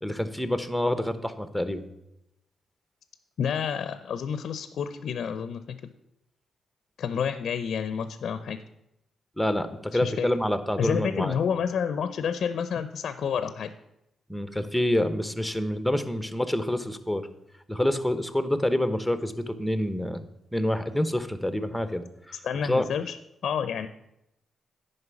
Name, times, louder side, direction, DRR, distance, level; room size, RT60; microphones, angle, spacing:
voice 1, 0.0-1.8 9.4-11.4 14.3-17.2 17.7-20.2 20.5-22.4 22.6-22.9, left 1 dB, ahead, 11 dB, 1.0 m, -27 dB
voice 2, 3.4-5.6 7.0-8.6 10.0-10.3 10.8-13.7 22.4-23.2 23.4-23.9, left 7 dB, 70° left, 12 dB, 0.6 m, -29 dB
9.6 x 5.4 x 7.0 m, 0.85 s
supercardioid pair, 60°, 0 cm